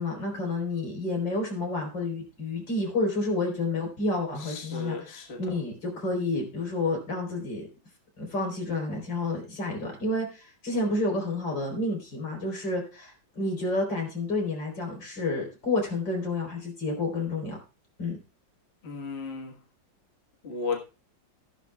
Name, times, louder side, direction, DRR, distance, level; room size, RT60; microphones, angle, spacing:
voice 1, 0.0-7.7 8.2-17.6 18.0-18.2, left 2 dB, 75° left, 1 dB, 4.8 m, -30 dB
voice 2, 4.4-5.4 18.8-19.6 20.4-20.8, left 4 dB, 35° left, 2 dB, 1.6 m, -34 dB
14.5 x 11.0 x 2.4 m, 0.32 s
omnidirectional pair, 2.0 m